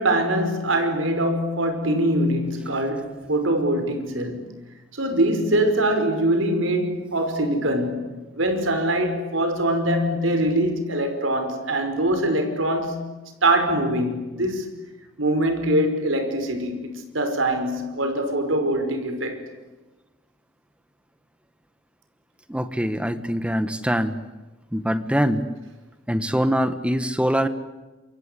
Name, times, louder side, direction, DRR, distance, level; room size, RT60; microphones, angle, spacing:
voice 1, 0.0-4.5 4.9-8.1 8.3-13.0 13.4-14.7 15.2-19.4, right 1 dB, 70° right, 5.4 m, -23 dB
voice 2, 22.5-24.1 24.7-25.5 26.1-27.5, equal, 5° right, 1.4 m, -23 dB
28.0 x 24.0 x 8.3 m
head